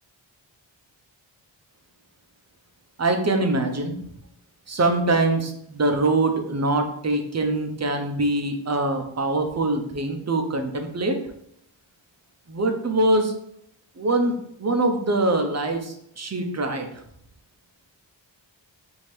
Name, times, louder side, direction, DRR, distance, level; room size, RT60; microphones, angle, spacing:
voice 1, 3.0-4.0 4.7-11.2 12.5-13.3 14.0-16.9, right 2 dB, 35° right, 5 dB, 0.7 m, -23 dB
4.4 x 2.8 x 3.2 m, 0.73 s
cardioid pair, 55°, 46 cm